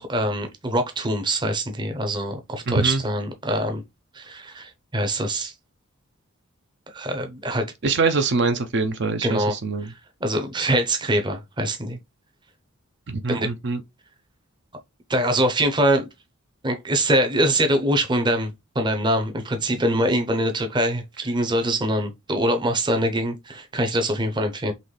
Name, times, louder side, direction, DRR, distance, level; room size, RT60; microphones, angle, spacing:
voice 1, 0.0-3.8 4.1-5.5 6.9-7.7 9.2-9.5 9.8-9.9 10.2-12.0 13.3-13.5 15.1-16.1 16.6-24.7, right 1 dB, 20° right, 0.7 m, -23 dB
voice 2, 2.7-3.0 7.8-9.9 13.1-13.8, right 4 dB, 55° right, 0.6 m, -23 dB
4.0 x 3.0 x 3.2 m
head